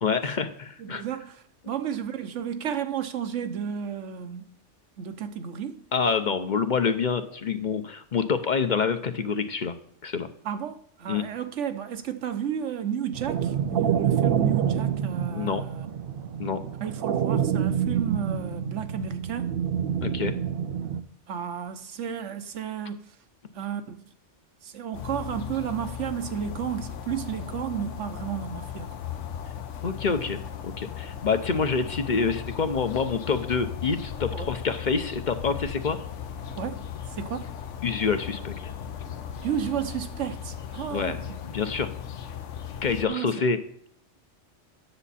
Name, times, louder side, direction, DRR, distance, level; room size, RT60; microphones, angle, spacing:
voice 1, 0.0-1.0 5.9-9.7 10.0-10.3 11.1-11.3 15.3-15.7 16.4-16.6 20.0-20.4 29.8-36.0 37.8-38.7 40.9-41.9 42.8-43.6, left 5 dB, 45° left, 0.8 m, -27 dB
voice 2, 0.8-1.4 1.7-4.6 5.0-5.8 10.4-15.9 16.8-19.6 21.3-23.0 23.5-24.0 24.6-28.9 34.3-34.5 36.6-36.8 37.2-37.5 39.4-41.2 43.1-43.3, right 8 dB, 75° right, 1.2 m, -32 dB
sound 1, 13.1-21.0, right 9 dB, 60° right, 0.7 m, -27 dB
sound 2, 24.9-43.1, left 8 dB, 75° left, 1.1 m, -37 dB
9.9 x 7.1 x 4.2 m
omnidirectional pair, 1.2 m